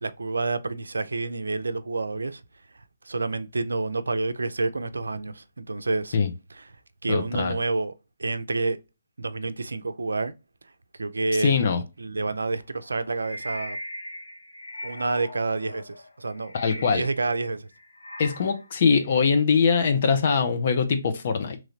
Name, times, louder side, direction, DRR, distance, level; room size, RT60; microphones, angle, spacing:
voice 1, 0.0-2.4 3.1-6.2 6.5-6.7 7.0-7.9 8.2-8.8 9.2-10.3 11.0-11.5 12.0-13.8 14.8-17.7, right 3 dB, 75° right, 0.5 m, -28 dB
voice 2, 7.1-7.6 11.4-11.8 16.5-17.1 18.2-21.6, left 5 dB, 50° left, 0.6 m, -22 dB
sound 1, 12.8-17.3 17.7-19.3, left 1 dB, 90° left, 1.0 m, -40 dB
3.8 x 3.1 x 2.7 m
figure-of-eight pair, 140°, 0 cm